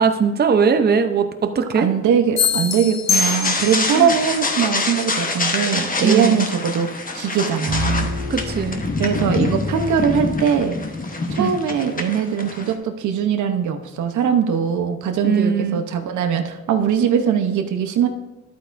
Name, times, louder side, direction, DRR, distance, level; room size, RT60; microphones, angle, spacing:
voice 1, 0.0-1.9 3.9-4.1 6.0-6.5 8.3-8.8 11.4-11.6 15.2-15.8, right 5 dB, 35° right, 7 dB, 0.7 m, -19 dB
voice 2, 1.7-6.9 7.1-8.1 9.0-10.8 11.3-18.1, right 7 dB, 85° right, 6 dB, 0.9 m, -21 dB
sound 1, 2.4-4.0, left 6 dB, 65° left, 1.1 m, -22 dB
sound 2, 3.1-12.7, left 3 dB, 30° left, 1.1 m, -26 dB
sound 3, 7.7-11.1, left 4 dB, 50° left, 2.2 m, -29 dB
11.5 x 8.5 x 2.6 m, 1.1 s
cardioid pair, 90°, 29 cm